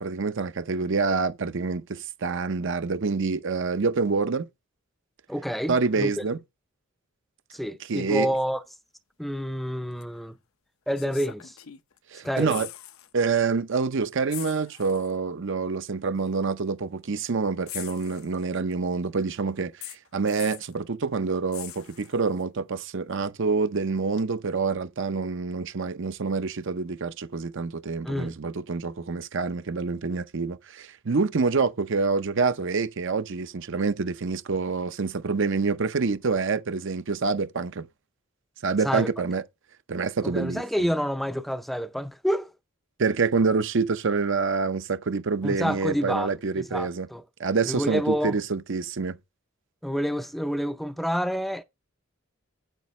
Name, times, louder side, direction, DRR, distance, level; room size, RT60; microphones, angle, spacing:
voice 1, 0.0-4.5 5.7-6.4 7.9-8.3 12.1-12.7 13.1-37.9 38.6-39.4 39.9-40.6 43.0-47.1 47.4-49.2, right 4 dB, 60° right, 0.7 m, -27 dB
voice 2, 5.3-6.2 7.5-8.6 9.2-10.4 10.9-11.6 12.2-12.6 28.0-28.3 38.8-39.1 40.2-42.5 45.4-47.2 47.7-48.4 49.8-51.6, equal, ahead, 0.4 m, -28 dB
sound 1, 10.0-10.1 10.9-12.0 12.3-13.1 13.4-13.6 14.3-15.2 16.2-16.3 17.7-18.7 19.8-20.8 21.5-22.4 24.2-24.3, left 13 dB, 80° left, 0.7 m, -42 dB
9.1 x 8.2 x 3.1 m
head